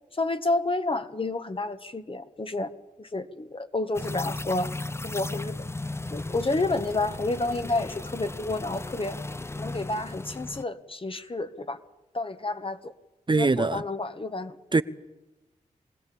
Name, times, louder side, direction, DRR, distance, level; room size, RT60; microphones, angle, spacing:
voice 1, 0.1-2.7 3.0-4.7 5.0-5.7 6.1-9.2 9.6-11.8 12.1-12.9 13.3-14.6, left 2 dB, 40° left, 1.5 m, -30 dB
sound 1, 3.9-10.6, left 2 dB, 20° left, 0.7 m, -36 dB
voice 2, 13.3-13.8 14.7-14.8, right 3 dB, 35° right, 0.8 m, -22 dB
23.5 x 16.5 x 8.6 m
cardioid pair, 40°, 14 cm